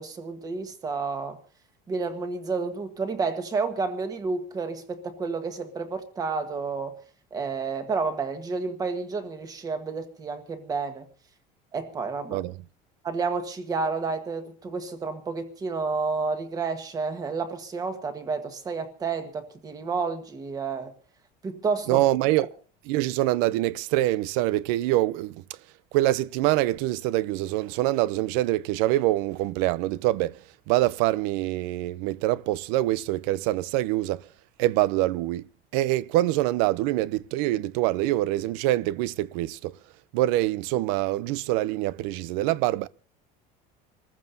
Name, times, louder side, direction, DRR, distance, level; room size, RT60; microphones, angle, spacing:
voice 1, 0.0-1.4 1.9-6.9 7.3-11.1 11.7-12.4 13.0-20.9 21.4-22.0, right 4 dB, 20° right, 1.4 m, -30 dB
voice 2, 21.9-22.5 22.9-25.4 25.9-30.4 30.7-34.2 34.6-35.4 35.7-39.7 40.1-42.9, right 16 dB, 85° right, 0.6 m, -25 dB
27.0 x 14.5 x 2.7 m
cardioid pair, 175°, 19 cm